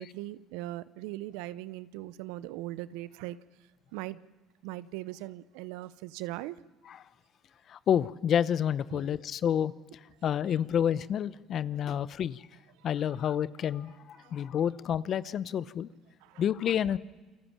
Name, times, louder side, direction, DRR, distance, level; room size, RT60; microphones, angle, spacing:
voice 1, 0.0-3.4 3.9-4.2 4.6-6.6 8.9-9.0 14.2-14.3 16.2-16.4, right 16 dB, 80° right, 17 dB, 0.7 m, -39 dB
voice 2, 7.7-9.7 10.2-12.4 12.8-15.9 16.4-17.0, left 9 dB, 55° left, 17 dB, 0.9 m, -29 dB
28.0 x 25.0 x 7.4 m, 1.3 s
supercardioid pair, 70°, 0 cm